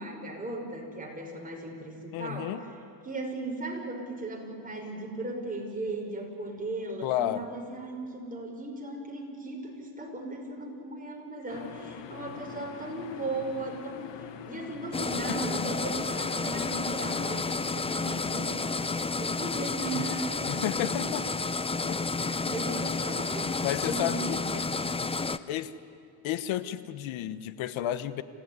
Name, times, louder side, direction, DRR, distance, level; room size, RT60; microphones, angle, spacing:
voice 1, 0.0-2.7 3.0-18.7 19.2-21.2 22.2-24.7, right 2 dB, 15° right, 0 dB, 5.7 m, -37 dB
voice 2, 2.1-2.6 7.0-7.4 19.9-20.1 20.5-21.2 21.9-22.0 23.6-24.6 25.5-25.7 26.2-28.2, left 12 dB, 80° left, 14 dB, 1.2 m, -32 dB
sound 1, 11.5-17.6, left 9 dB, 65° left, 1.5 m, -45 dB
sound 2, 14.9-25.4, left 4 dB, 15° left, 0.6 m, -31 dB
28.0 x 16.5 x 9.7 m, 2.4 s
cardioid pair, 115°, 47 cm